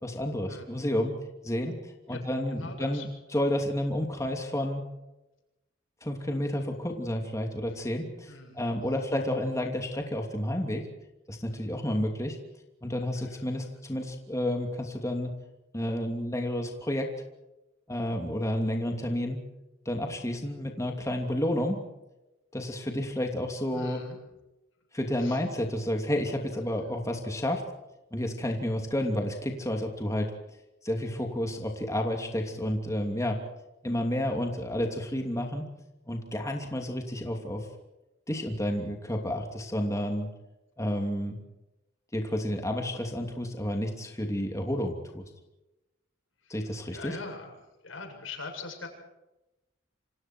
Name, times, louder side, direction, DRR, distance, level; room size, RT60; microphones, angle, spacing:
voice 1, 0.0-1.1 1.4-4.8 6.0-10.9 11.3-12.4 12.8-15.3 15.7-17.1 17.9-19.4 19.8-21.8 22.5-24.0 24.9-27.6 28.1-30.3 30.8-33.4 33.8-35.6 36.1-37.7 38.3-40.3 40.8-41.4 42.1-45.3 46.5-47.2, left 1 dB, 15° left, 2 dB, 2.9 m, -30 dB
voice 2, 2.1-3.1 8.3-9.1 13.1-13.6 23.7-24.2 25.2-25.4 46.4-47.5 47.8-48.9, left 3 dB, 85° left, 2 dB, 7.7 m, -43 dB
28.5 x 26.5 x 4.6 m, 0.97 s
head